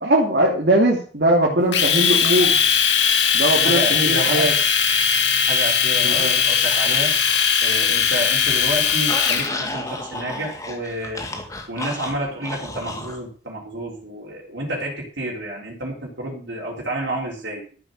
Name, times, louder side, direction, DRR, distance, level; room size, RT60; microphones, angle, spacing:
voice 1, 0.0-2.6 3.3-4.5 6.0-6.4, right 1 dB, 65° right, -2 dB, 2.9 m, -20 dB
Domestic sounds home sounds, 1.7-9.5, left 7 dB, 80° left, 2.3 m, -19 dB
voice 2, 3.6-4.5 5.5-7.2 7.6-11.2 11.7-17.6, right 1 dB, 85° right, -3 dB, 3.8 m, -29 dB
sound 1, 4.2-9.0, right 1 dB, 45° right, 4.0 m, -36 dB
sound 2, 6.7-7.5 7.9-13.2, left 2 dB, 20° left, 2.1 m, -33 dB
13.5 x 7.9 x 6.5 m, 0.41 s
head